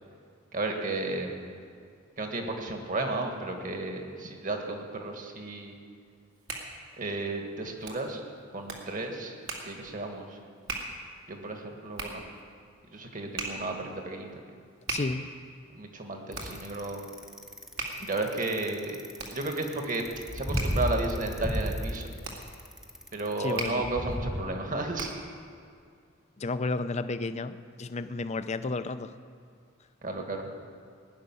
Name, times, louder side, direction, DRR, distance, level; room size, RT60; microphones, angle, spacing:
voice 1, 0.5-1.5 2.2-5.8 7.0-8.2 8.5-9.3 9.7-10.4 11.3-12.2 12.9-14.3 15.7-17.0 18.0-19.0 19.3-20.1 20.3-22.1 23.1-25.1 30.0-30.5, right 2 dB, 45° right, 3 dB, 1.8 m, -33 dB
Hands, 6.1-25.4, right 3 dB, 75° right, 2.4 m, -41 dB
voice 2, 14.9-15.3 23.4-23.9 26.4-29.1, left 3 dB, 35° left, 12 dB, 0.5 m, -32 dB
Bicycle, 16.3-24.4, equal, 5° right, 1.0 m, -33 dB
18.0 x 6.6 x 9.7 m, 2.3 s
head